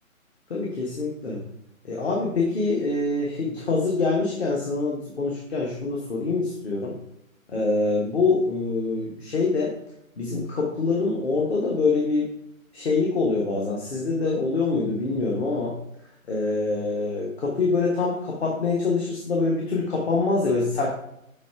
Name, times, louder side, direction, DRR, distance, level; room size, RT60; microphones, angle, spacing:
voice 1, 0.5-1.4 1.8-7.0 7.5-9.7 10.2-12.3 12.7-15.7 16.3-21.0, left 3 dB, 50° left, -2 dB, 1.3 m, -25 dB
6.5 x 3.3 x 4.7 m, 0.78 s
figure-of-eight pair, 145°, 42 cm